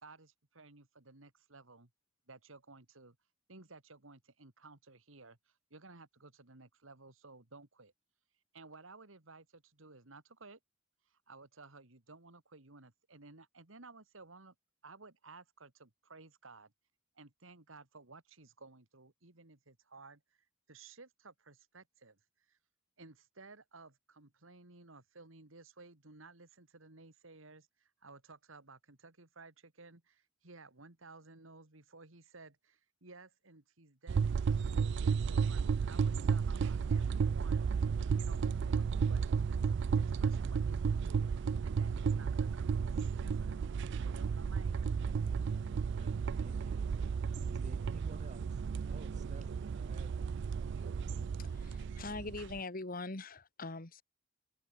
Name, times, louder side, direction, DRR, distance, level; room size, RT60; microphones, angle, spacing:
voice 1, 0.0-1.9 2.3-3.2 3.5-7.9 8.5-10.6 11.1-14.5 14.8-16.7 17.1-22.2 22.5-22.6 23.0-37.9 38.2-44.9, right 3 dB, 80° right, 2.6 m, -56 dB
sound 1, 34.1-52.6, right 6 dB, 60° right, 0.4 m, -33 dB
voice 2, 45.7-46.9 47.4-50.1, right 1 dB, 35° right, 6.3 m, -55 dB
voice 3, 51.4-54.0, left 3 dB, 45° left, 1.8 m, -42 dB
open air
head